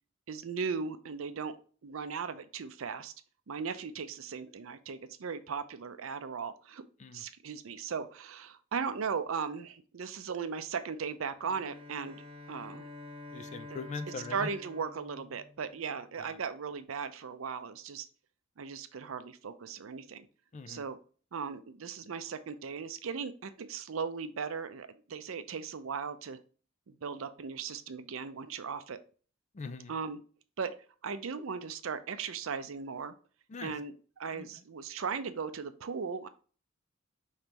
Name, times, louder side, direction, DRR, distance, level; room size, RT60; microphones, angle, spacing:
voice 1, 0.3-1.5 1.8-3.1 3.5-6.8 7.1-12.2 12.5-12.9 13.7-13.8 14.3-18.1 18.6-20.3 20.7-21.0 21.3-26.4 26.9-29.0 29.9-30.2 30.6-30.7 31.0-33.1 33.6-36.3, right 5 dB, 80° right, 11 dB, 0.5 m, -37 dB
Bowed string instrument, 11.4-16.2, left 2 dB, 25° right, 0.9 m, -48 dB
voice 2, 13.3-14.5 16.2-16.4 20.5-20.9 29.5-29.9 33.5-33.7 34.3-34.5, left 4 dB, 35° left, 10 dB, 0.4 m, -42 dB
5.2 x 3.2 x 2.9 m, 0.40 s
head